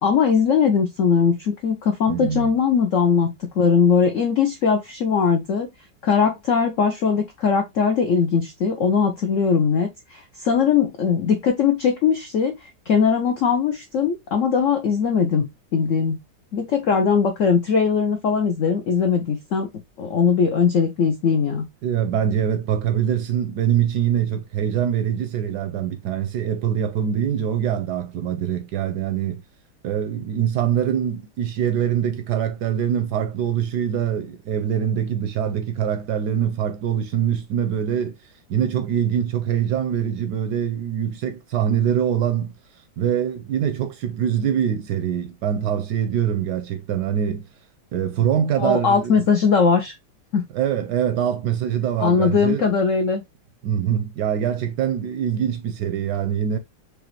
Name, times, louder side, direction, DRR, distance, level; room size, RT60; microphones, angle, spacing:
voice 1, 0.0-5.7 6.0-16.2 16.5-19.7 20.0-21.6 48.6-49.9 50.3-50.4 52.0-53.2, left 6 dB, 75° left, 0.7 m, -20 dB
voice 2, 2.1-2.5 21.8-29.4 29.8-38.1 38.5-42.5 43.0-47.5 47.9-49.2 50.5-52.6 53.6-56.6, right 9 dB, 75° right, 1.0 m, -24 dB
4.8 x 2.5 x 3.0 m
omnidirectional pair, 2.1 m